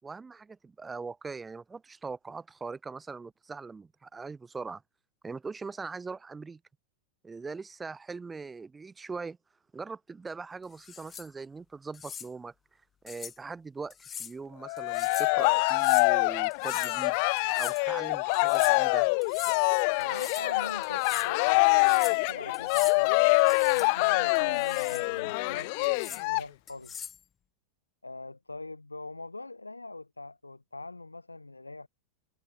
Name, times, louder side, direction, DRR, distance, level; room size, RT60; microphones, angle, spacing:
voice 1, 0.0-4.8 5.2-6.6 7.2-9.4 9.7-12.5 13.0-17.2 17.6-19.1, right 4 dB, 15° right, 5.3 m, -41 dB
sound 1, 10.7-11.3 11.9-12.3 13.1-13.4 13.9-14.3 14.8-15.3 15.7-16.1 16.5-17.0 17.4-17.8 18.3-18.8 19.2-19.6 20.0-20.5 20.8-21.3 21.7-22.2 22.5-23.0 23.4-23.9 24.4-25.1 25.8-26.2 26.7-27.2, left 8 dB, 20° left, 5.1 m, -42 dB
Cheering, 14.6-26.4, left 32 dB, 45° left, 2.1 m, -25 dB
voice 2, 20.0-27.0 28.0-31.9, left 2 dB, 80° left, 7.5 m, -43 dB
figure-of-eight pair, 90°, 0 cm